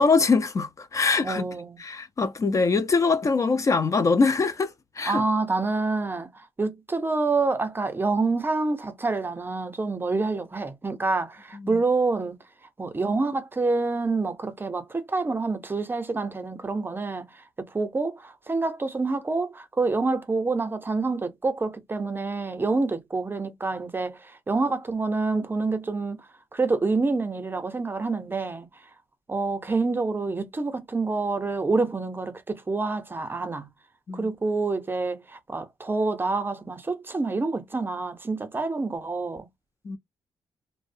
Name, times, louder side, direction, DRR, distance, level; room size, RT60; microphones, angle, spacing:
voice 1, 0.0-1.5 1.8-5.2 34.1-34.3 39.9-40.0, left 4 dB, 35° left, 0.4 m, -23 dB
voice 2, 1.2-1.8 5.1-12.4 12.8-26.2 26.5-28.7 29.3-33.7 34.1-39.5, right 3 dB, 25° right, 0.5 m, -27 dB
2.6 x 2.0 x 2.5 m
cardioid pair, 95°, 9 cm